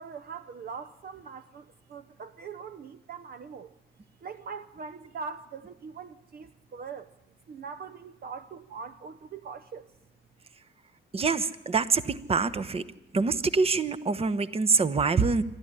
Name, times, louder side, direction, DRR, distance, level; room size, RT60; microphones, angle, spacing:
voice 1, 0.0-3.7 4.2-7.1 7.5-9.9, right 5 dB, 50° right, 11 dB, 0.8 m, -42 dB
voice 2, 11.1-12.8 13.1-15.4, right 4 dB, 30° right, 11 dB, 1.0 m, -25 dB
26.0 x 12.5 x 10.0 m, 0.93 s
cardioid pair, 90°, 20 cm